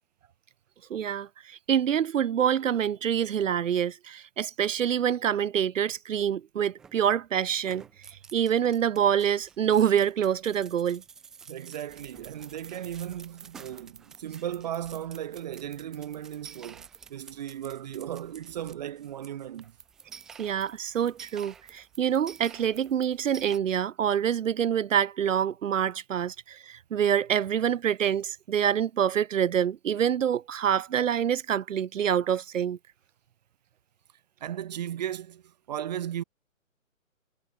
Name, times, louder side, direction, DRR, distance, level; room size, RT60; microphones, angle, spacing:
voice 1, 0.9-7.8 8.3-11.0 20.4-32.8, right 9 dB, 70° right, 0.8 m, -26 dB
sound 1, 6.8-7.2 7.6-23.6, right 6 dB, ahead, 0.5 m, -50 dB
voice 2, 11.5-19.8 34.4-36.2, right 11 dB, 30° right, 0.8 m, -36 dB
hypercardioid pair, 155°, 41 cm